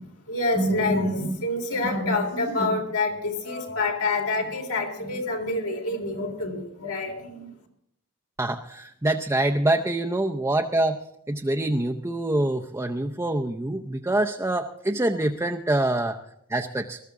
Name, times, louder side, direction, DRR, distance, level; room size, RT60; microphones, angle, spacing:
voice 1, 0.0-7.5, left 2 dB, 80° left, 1 dB, 3.6 m, -27 dB
voice 2, 8.4-16.2 16.5-17.0, right 1 dB, 10° right, 4 dB, 0.6 m, -25 dB
20.5 x 13.5 x 3.7 m, 0.73 s
head